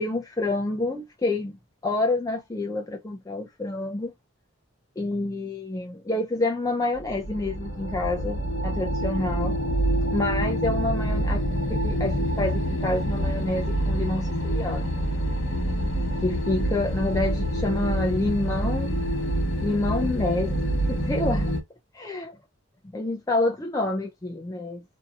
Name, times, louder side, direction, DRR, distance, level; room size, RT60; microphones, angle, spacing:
voice 1, 0.0-1.6 1.8-4.1 5.0-9.6 10.1-11.4 11.7-14.9 16.2-19.0 19.6-21.5 21.9-22.3 22.9-24.8, left 2 dB, 15° left, 0.3 m, -28 dB
sound 1, 6.9-21.6, equal, 65° left, 0.9 m, -26 dB
2.6 x 2.6 x 2.3 m
head